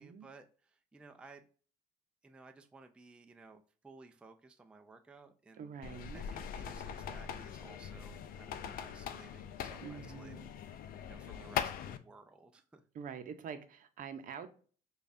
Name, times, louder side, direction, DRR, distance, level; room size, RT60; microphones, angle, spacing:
voice 1, 0.0-1.4 2.2-5.7 6.1-12.8, right 3 dB, 5° right, 0.3 m, -57 dB
voice 2, 5.6-6.2 9.8-10.5 12.9-14.5, right 7 dB, 50° right, 0.6 m, -46 dB
sound 1, 5.8-12.0, left 8 dB, 60° left, 0.4 m, -41 dB
5.1 x 2.3 x 2.5 m
cardioid pair, 110°, 17 cm